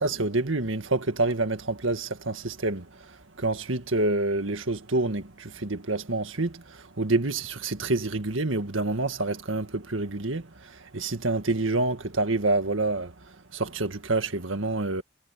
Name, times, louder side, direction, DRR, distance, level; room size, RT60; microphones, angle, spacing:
voice 1, 0.0-13.1 13.5-15.0, right 2 dB, 75° right, 1.9 m, -27 dB
head